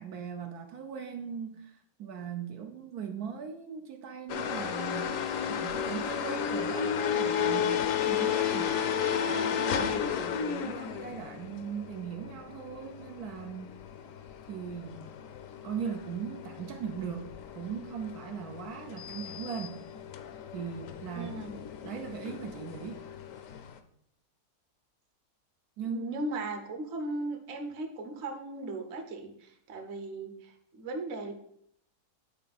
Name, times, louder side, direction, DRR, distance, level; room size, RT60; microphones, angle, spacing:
voice 1, 0.0-5.1 5.5-13.7 14.5-15.1 15.6-19.8 20.5-21.3 21.8-23.0 25.8-26.1, right 7 dB, 75° right, 4 dB, 1.1 m, -39 dB
sound 1, 4.3-23.8, left 8 dB, 65° left, 0.9 m, -33 dB
voice 2, 21.1-21.5 25.8-31.3, right 2 dB, 50° right, 4 dB, 1.1 m, -37 dB
9.3 x 4.0 x 4.1 m, 0.71 s
omnidirectional pair, 1.7 m